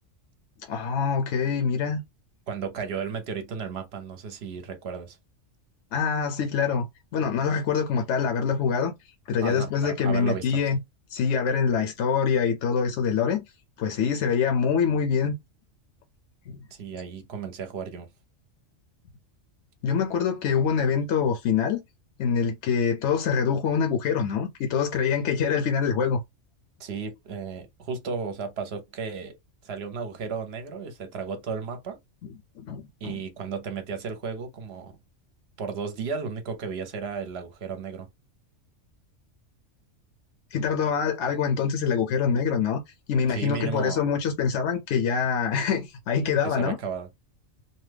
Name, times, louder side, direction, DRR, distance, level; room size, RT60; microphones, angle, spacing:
voice 1, 0.6-2.0 5.9-6.8 7.1-8.9 9.3-10.8 11.1-13.4 13.8-15.3 16.5-16.6 19.8-21.8 22.2-26.2 32.6-33.2 40.5-42.8 43.1-46.8, left 6 dB, 70° left, 0.8 m, -25 dB
voice 2, 2.5-5.2 9.4-10.5 16.7-18.1 26.8-29.4 29.6-32.0 33.0-35.0 35.6-38.1 43.3-44.0 46.4-47.1, right 6 dB, 60° right, 0.8 m, -34 dB
2.8 x 2.1 x 3.2 m
omnidirectional pair, 1.3 m